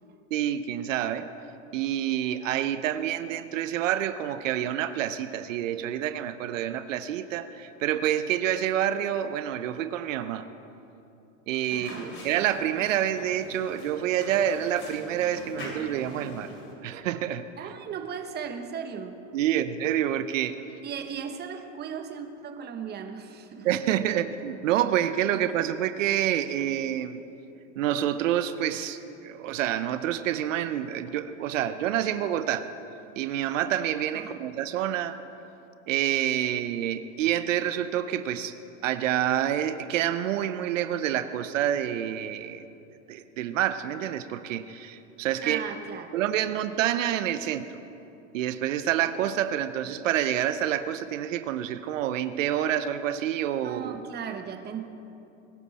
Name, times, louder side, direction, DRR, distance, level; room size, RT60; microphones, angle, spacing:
voice 1, 0.3-1.3 1.7-10.5 11.5-16.5 16.8-17.5 19.3-20.6 23.6-27.2 27.8-32.7 33.2-35.2 35.9-38.5 38.8-42.6 43.1-45.6 46.1-47.8 48.3-54.1, right 11 dB, 85° right, 11 dB, 0.8 m, -28 dB
sound 1, 11.7-16.7, left 1 dB, 30° left, 3.8 m, -43 dB
voice 2, 11.7-12.2 17.6-19.2 20.8-23.8 25.3-25.5 34.1-34.4 45.4-46.5 53.6-54.9, right 7 dB, 25° right, 5 dB, 1.2 m, -37 dB
21.0 x 12.5 x 4.2 m, 2.9 s
supercardioid pair, 125°, 37 cm